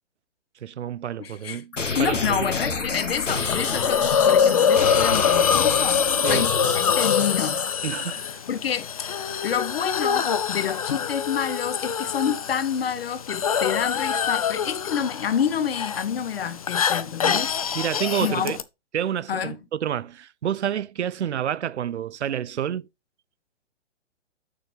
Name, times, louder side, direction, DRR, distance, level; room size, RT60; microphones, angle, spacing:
voice 1, 0.6-1.7 2.0-2.5 6.2-6.5 7.8-8.3 17.2-17.4 17.7-18.6 18.9-22.9, right 10 dB, 65° right, 0.5 m, -29 dB
voice 2, 1.2-1.6 1.9-7.6 8.5-8.9 9.4-17.5 18.2-18.6 19.3-19.6, left 8 dB, 55° left, 1.0 m, -28 dB
sound 1, 1.7-7.7, left 4 dB, 85° left, 1.2 m, -29 dB
Hiss, 3.2-18.6, left 7 dB, 30° left, 0.4 m, -24 dB
6.7 x 6.6 x 3.3 m
figure-of-eight pair, 125°, 36 cm